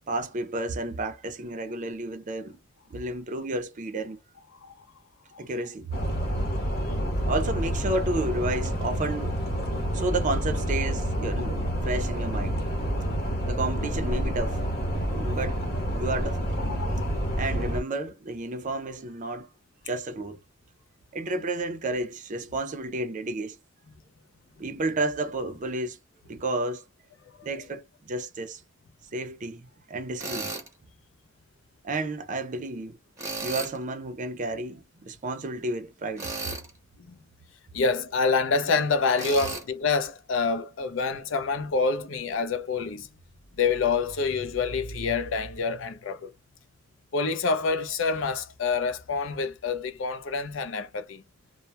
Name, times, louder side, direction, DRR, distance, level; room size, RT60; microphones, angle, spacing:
voice 1, 0.1-2.6 2.9-4.2 5.4-6.0 7.3-9.4 9.9-12.6 13.5-14.6 15.1-15.6 15.9-16.5 17.4-19.5 19.9-20.4 21.1-23.6 24.6-26.0 26.3-26.8 27.4-28.6 29.1-30.5 31.8-33.0 33.4-36.3, right 2 dB, 40° right, 0.5 m, -31 dB
sound 1, 5.9-17.8, equal, 50° left, 0.9 m, -28 dB
voice 2, 6.0-6.4 6.7-6.9 16.7-17.1 27.4-27.5 37.1-37.2 37.7-43.1 43.6-46.3 47.1-51.2, left 4 dB, 65° left, 0.5 m, -27 dB
Tools, 30.2-30.7 33.2-33.8 36.2-36.7 39.1-39.6, right 3 dB, 15° right, 0.8 m, -34 dB
2.2 x 2.0 x 2.8 m
head